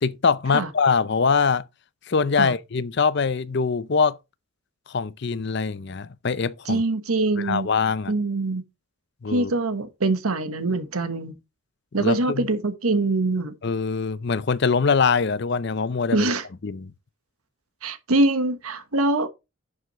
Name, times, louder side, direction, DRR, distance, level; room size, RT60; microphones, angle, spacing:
voice 1, 0.0-1.6 2.1-4.2 4.9-6.8 7.4-8.1 9.2-9.5 12.0-12.5 13.6-16.3 16.6-16.9, left 5 dB, 50° left, 0.5 m, -23 dB
voice 2, 6.7-7.7 8.1-8.6 9.3-11.3 11.9-13.5 16.1-16.4 17.8-19.3, right 2 dB, 90° right, 1.3 m, -23 dB
11.0 x 7.0 x 3.1 m
head